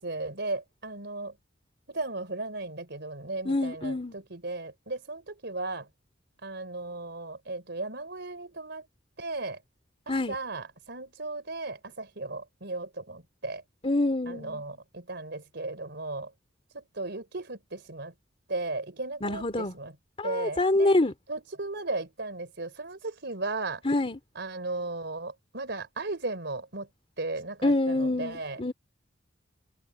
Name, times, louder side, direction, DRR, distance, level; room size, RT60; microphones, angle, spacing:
voice 1, 0.0-1.3 1.9-5.9 6.4-8.9 9.2-9.6 10.1-13.6 14.3-16.3 16.7-18.1 18.5-20.0 20.2-20.9 21.3-23.8 24.3-26.9 27.2-28.6, right 2 dB, 60° right, 4.2 m, -36 dB
voice 2, 3.4-4.1 10.1-10.3 13.8-14.6 19.2-19.7 20.2-21.1 23.8-24.2 27.6-28.7, left 2 dB, 30° left, 2.6 m, -26 dB
head